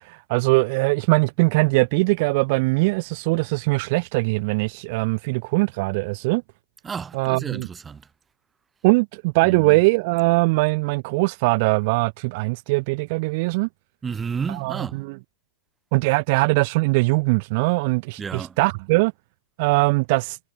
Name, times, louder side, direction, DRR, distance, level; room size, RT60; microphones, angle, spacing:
voice 1, 0.0-6.4 7.1-7.7 8.8-13.7 14.5-15.1 15.9-19.1 19.6-20.4, right 27 dB, 50° right, 0.7 m, -21 dB
voice 2, 6.8-8.1 9.4-9.8 14.0-15.0 18.2-18.6, right 6 dB, 15° right, 1.2 m, -31 dB
hypercardioid pair, 110°, 0 cm